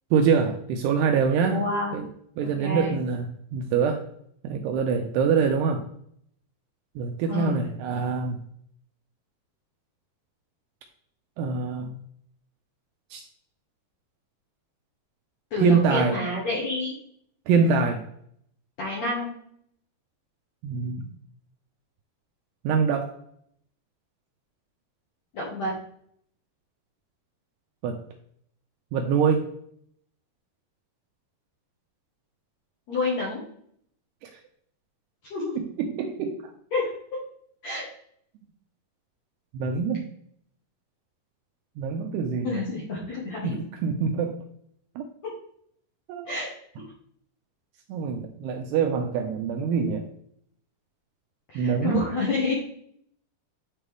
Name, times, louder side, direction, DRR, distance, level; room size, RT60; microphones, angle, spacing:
voice 1, 0.1-1.7 1.9-2.1 2.4-4.0 4.4-5.8 7.0-8.4 11.4-12.0 13.1-13.2 15.6-16.2 17.5-18.0 20.6-21.1 22.6-23.1 27.8-28.0 28.9-29.5 34.2-34.3 35.6-36.4 39.5-40.1 41.8-42.6 43.4-44.4 45.0-45.1 46.1-46.3 47.9-50.1 51.6-52.1, right 6 dB, 80° right, 3 dB, 2.5 m, -25 dB
voice 2, 1.5-1.9 2.4-2.9 7.3-7.6 15.5-16.9 18.8-19.3 25.3-25.7 32.9-33.4 35.3-35.5 36.7-36.8 37.6-37.8 42.4-43.5 46.3-46.5 51.5-52.5, left 3 dB, 60° left, -5 dB, 1.9 m, -28 dB
10.0 x 4.5 x 3.4 m, 0.67 s
omnidirectional pair, 5.3 m